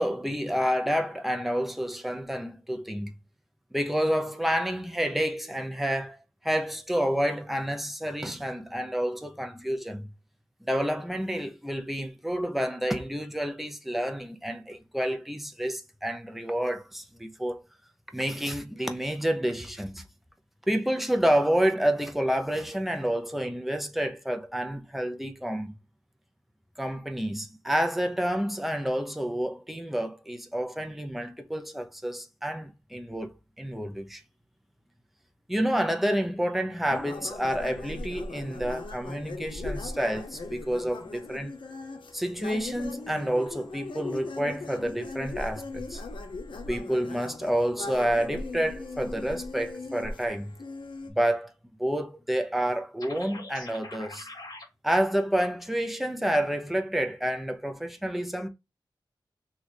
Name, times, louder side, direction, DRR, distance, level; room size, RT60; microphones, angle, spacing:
voice 1, 0.0-3.2 3.7-10.1 10.7-17.6 18.1-20.0 20.7-25.7 26.8-34.2 35.5-41.5 42.1-46.0 46.7-50.5 51.1-51.5 51.8-54.3 54.8-58.5, equal, ahead, 0.7 m, -29 dB
sound 1, 36.8-51.1, left 3 dB, 70° left, 0.7 m, -39 dB
sound 2, 53.0-54.7, left 2 dB, 50° left, 1.6 m, -43 dB
3.0 x 2.4 x 4.1 m
wide cardioid pair, 80°, 8 cm